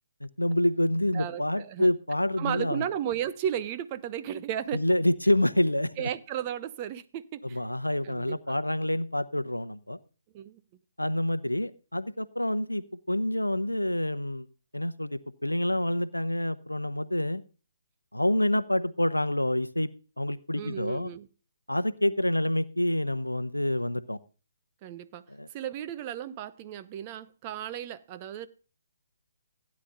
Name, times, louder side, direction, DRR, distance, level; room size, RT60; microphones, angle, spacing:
voice 1, 0.2-2.8 4.7-6.1 7.5-10.0 11.0-14.5 14.7-17.4 18.1-19.9 20.2-21.1 21.7-24.2 25.3-25.5, left 1 dB, 85° left, 0.7 m, -27 dB
voice 2, 1.1-1.9 2.4-4.8 6.0-7.6 8.0-8.6 10.3-10.6 20.5-21.3 24.8-25.2 25.5-28.5, right 10 dB, 25° right, 0.7 m, -34 dB
16.0 x 9.8 x 2.5 m
figure-of-eight pair, 135°, 0 cm